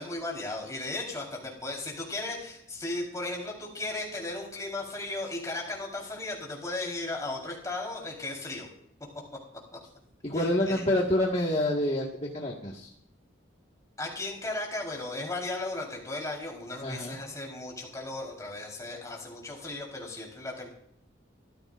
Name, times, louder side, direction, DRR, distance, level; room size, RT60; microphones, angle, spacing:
voice 1, 0.0-8.7 10.3-10.8 14.0-20.7, left 2 dB, 15° left, -1 dB, 4.2 m, -36 dB
voice 2, 10.2-12.9 16.8-17.2, left 1 dB, 30° left, -2 dB, 1.8 m, -27 dB
24.0 x 15.0 x 2.6 m, 0.69 s
head